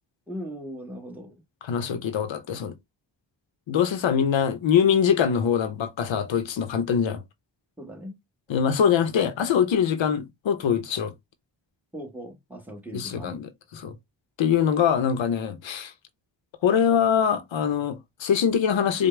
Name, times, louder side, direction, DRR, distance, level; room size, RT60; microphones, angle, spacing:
voice 1, 0.3-1.4 7.8-8.2 11.9-13.4, equal, 5° right, 1.4 m, -39 dB
voice 2, 1.6-2.7 3.7-7.2 8.5-11.1 12.9-13.9 14.4-15.9 16.6-19.1, left 8 dB, 85° left, 0.8 m, -23 dB
5.0 x 2.2 x 3.2 m
cardioid pair, 75°, 45 cm